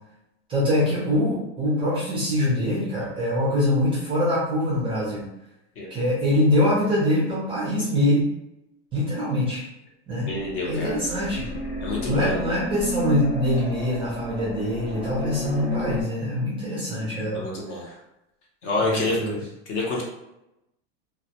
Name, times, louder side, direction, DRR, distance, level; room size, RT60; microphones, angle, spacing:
voice 1, 0.5-5.2 5.9-8.3 8.9-9.6 10.1-10.3 10.6-11.5 12.0-17.4 18.8-19.4, left 1 dB, 15° right, -7 dB, 0.4 m, -24 dB
sound 1, 10.3-16.0, equal, 60° left, 0.9 m, -32 dB
voice 2, 10.3-11.0 11.8-12.4 17.3-17.9 18.6-19.2 19.7-20.0, left 2 dB, 40° left, -3 dB, 0.6 m, -27 dB
2.1 x 2.1 x 2.7 m, 0.89 s
supercardioid pair, 155°, 35 cm